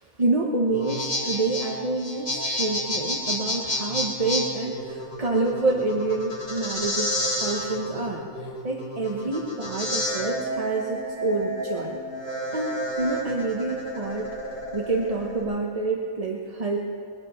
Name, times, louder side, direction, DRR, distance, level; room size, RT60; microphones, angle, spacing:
voice 1, 0.0-12.0 12.5-14.3 14.7-16.8, right 2 dB, 30° right, -1 dB, 0.9 m, -27 dB
sound 1, 0.7-15.4, equal, 35° left, 2.9 m, -30 dB
22.0 x 9.9 x 6.3 m, 2.4 s
omnidirectional pair, 1.6 m